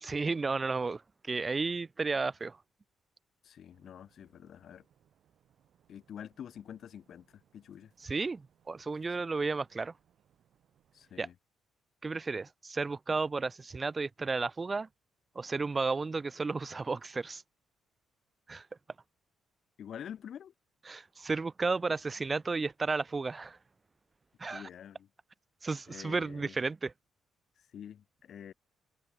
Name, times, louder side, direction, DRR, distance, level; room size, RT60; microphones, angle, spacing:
voice 1, 0.0-1.0 1.3-2.6 8.0-8.4 8.7-9.9 11.2-11.3 12.0-14.9 15.4-17.4 18.5-18.6 20.9-23.6 24.4-24.6 25.6-26.9, right 4 dB, 30° right, 0.6 m, -33 dB
voice 2, 3.4-4.8 5.9-7.9 10.9-11.3 19.8-20.5 24.5-25.1 25.9-26.6 27.7-28.5, left 9 dB, 65° left, 1.6 m, -47 dB
sound 1, 3.7-11.3, right 9 dB, 65° right, 7.6 m, -71 dB
cardioid pair, 90°, 0 cm